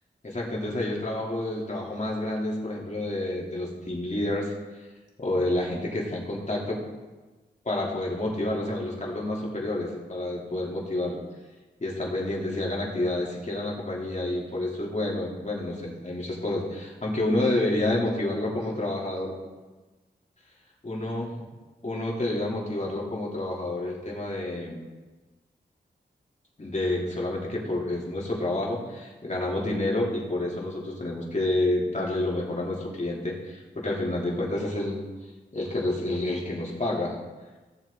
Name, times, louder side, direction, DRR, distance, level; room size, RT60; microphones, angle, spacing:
voice 1, 0.2-4.5 5.2-6.8 7.6-11.2 11.8-19.3 20.8-21.4 21.8-24.8 26.6-35.0 35.5-37.1, left 1 dB, 40° left, -3 dB, 3.2 m, -29 dB
16.5 x 7.5 x 3.9 m, 1.2 s
wide cardioid pair, 65°, 18 cm